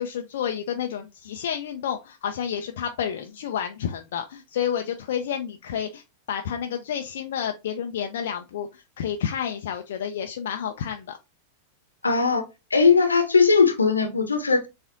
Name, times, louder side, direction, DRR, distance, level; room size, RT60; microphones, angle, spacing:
voice 1, 0.0-11.2, left 8 dB, 60° left, 0.4 m, -30 dB
voice 2, 12.0-12.4 12.7-14.7, left 5 dB, 75° left, 0.8 m, -19 dB
6.7 x 2.5 x 2.5 m
figure-of-eight pair, 90°, 0 cm